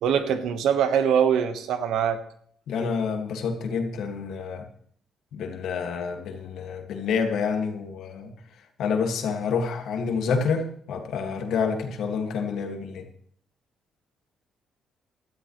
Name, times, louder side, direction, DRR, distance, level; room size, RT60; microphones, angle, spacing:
voice 1, 0.0-2.2, right 8 dB, 85° right, 9 dB, 1.3 m, -23 dB
voice 2, 2.7-4.6 5.3-8.3 8.8-13.1, left 5 dB, 75° left, 4 dB, 1.9 m, -28 dB
17.0 x 12.5 x 3.2 m, 0.62 s
cardioid pair, 90°, 0 cm